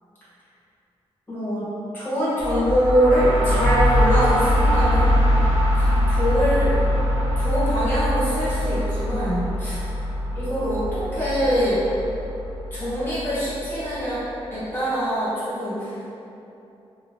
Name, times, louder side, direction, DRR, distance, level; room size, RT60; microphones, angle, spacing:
voice 1, 1.3-1.7 1.9-5.1 5.8-6.7 7.3-9.8 10.3-11.8 12.7-14.2 14.5-16.0, equal, 20° left, -12 dB, 1.4 m, -23 dB
sound 1, 2.4-14.1, equal, 45° right, 1.2 m, -22 dB
3.1 x 2.9 x 2.7 m, 2.8 s
wide cardioid pair, 135°, 10 cm